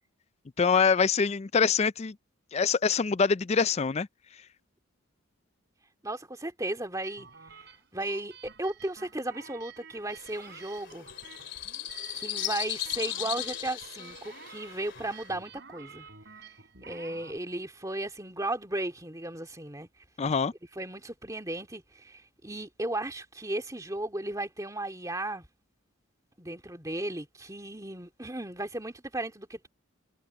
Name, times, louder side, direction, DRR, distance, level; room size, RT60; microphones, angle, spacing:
voice 1, 0.6-2.1 2.5-4.1 20.2-20.5, left 5 dB, 30° left, 0.4 m, -24 dB
voice 2, 6.0-11.1 12.1-16.1 16.4-16.5 16.8-19.9 20.8-25.5 26.4-29.7, right 1 dB, 15° right, 2.4 m, -35 dB
sound 1, 7.0-17.4, right 6 dB, 55° right, 5.1 m, -51 dB
sound 2, 10.1-15.3, left 11 dB, 55° left, 3.3 m, -37 dB
head